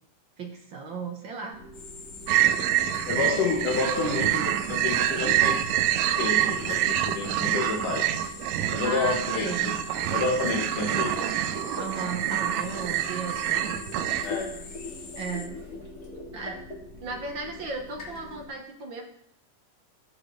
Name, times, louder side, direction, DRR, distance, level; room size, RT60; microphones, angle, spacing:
voice 1, 0.4-1.6 8.8-9.7 11.7-13.5 14.9-15.6 16.3-16.6 17.0-19.0, right 4 dB, 50° right, 2 dB, 1.6 m, -35 dB
sound 1, 1.5-18.5, left 2 dB, 30° left, 2.8 m, -43 dB
sound 2, 1.7-15.5, left 4 dB, 55° left, 3.3 m, -45 dB
sound 3, 2.3-14.2, right 12 dB, 80° right, 1.7 m, -26 dB
voice 2, 3.1-5.7 6.2-8.1 8.7-9.7 10.1-11.3 14.2-14.6, left 4 dB, 75° left, 2 dB, 3.1 m, -29 dB
19.0 x 7.1 x 3.3 m, 0.72 s
omnidirectional pair, 3.7 m